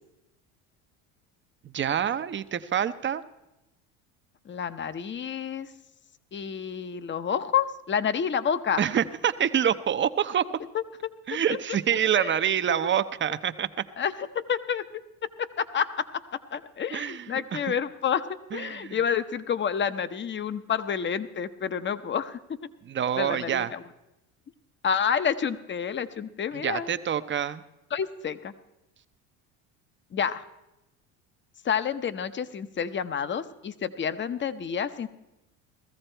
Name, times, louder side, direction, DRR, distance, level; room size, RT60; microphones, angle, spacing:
voice 1, 1.6-3.2 8.8-10.5 11.3-13.7 16.9-17.7 18.5-19.0 22.8-23.7 26.5-27.6, right 9 dB, 30° right, 12 dB, 0.7 m, -26 dB
voice 2, 4.5-5.7 6.3-8.8 10.7-10.8 12.2-12.3 14.0-14.8 15.4-16.1 16.5-18.3 18.5-22.4 23.2-23.8 24.8-26.9 27.9-28.5 30.1-30.4 31.6-35.1, left 7 dB, 30° left, 13 dB, 0.8 m, -29 dB
16.5 x 14.0 x 4.5 m, 0.95 s
supercardioid pair, 90°, 40 cm